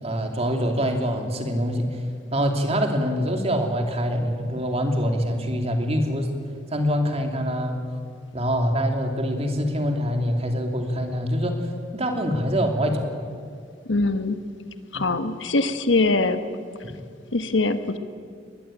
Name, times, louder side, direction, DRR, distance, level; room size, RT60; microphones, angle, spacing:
voice 1, 0.0-1.9 2.3-6.3 6.7-7.8 8.3-11.6 11.9-13.0 14.9-15.0 16.8-16.9, equal, 35° right, 4 dB, 2.8 m, -24 dB
voice 2, 13.9-14.4 14.9-16.4 17.3-18.0, left 3 dB, 90° left, 9 dB, 1.4 m, -22 dB
22.5 x 20.0 x 9.0 m, 2.2 s
head